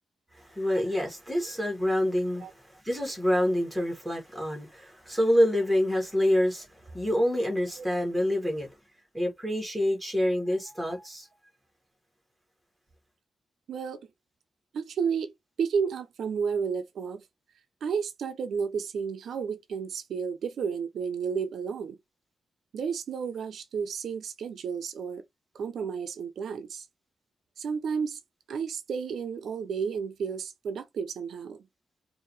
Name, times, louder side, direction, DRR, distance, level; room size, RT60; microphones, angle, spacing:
voice 1, 0.3-6.7 6.9-8.7 9.1-11.3, equal, ahead, 2.1 m, -27 dB
voice 2, 13.7-14.1 14.7-17.2 17.8-22.0 22.7-25.2 25.5-26.9 27.6-28.2 28.5-31.7, right 6 dB, 85° right, 0.6 m, -32 dB
4.6 x 2.7 x 3.2 m
wide cardioid pair, 175°, 0 cm